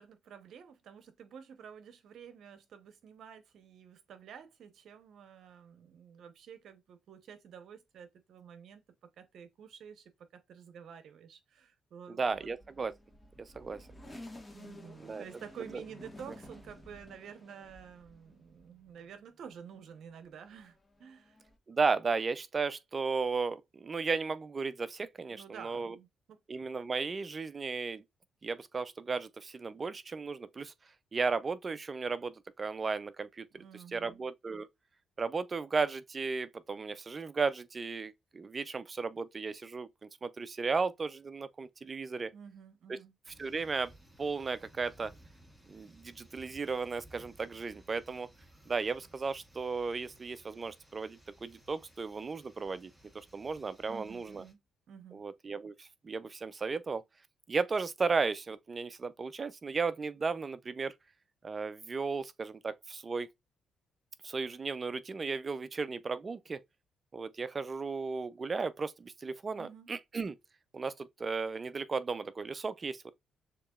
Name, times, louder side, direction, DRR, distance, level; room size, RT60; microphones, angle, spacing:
voice 1, 0.0-12.5 14.5-21.4 25.3-26.4 33.5-34.2 42.3-43.1 53.9-54.6 54.9-55.2 69.6-69.9, right 7 dB, 70° right, 0.8 m, -50 dB
voice 2, 12.1-12.9 13.4-13.9 15.0-15.2 15.7-15.8 21.7-26.0 26.5-28.0 28.4-30.7 31.1-33.5 33.7-34.7 35.2-42.3 42.9-43.0 43.4-43.9 44.2-45.1 45.7-48.3 48.7-54.4 55.1-57.0 57.5-61.0 61.4-63.3 64.2-66.6 67.1-70.4 70.7-73.1, right 4 dB, 35° right, 0.5 m, -35 dB
sound 1, 12.3-19.2 19.6-21.6, left 1 dB, 15° left, 1.4 m, -52 dB
sound 2, 43.2-54.5, equal, 5° right, 1.8 m, -60 dB
6.6 x 2.9 x 2.4 m
cardioid pair, 90°, 0 cm